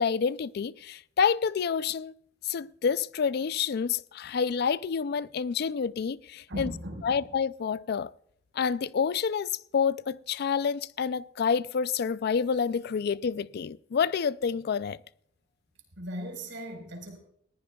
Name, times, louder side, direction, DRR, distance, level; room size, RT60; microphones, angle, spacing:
voice 1, 0.0-2.1 2.4-6.7 7.0-8.1 8.5-15.0, left 6 dB, 55° left, 0.4 m, -28 dB
voice 2, 6.5-7.2 16.0-17.2, equal, 75° right, 4.4 m, -38 dB
19.5 x 15.0 x 2.3 m
head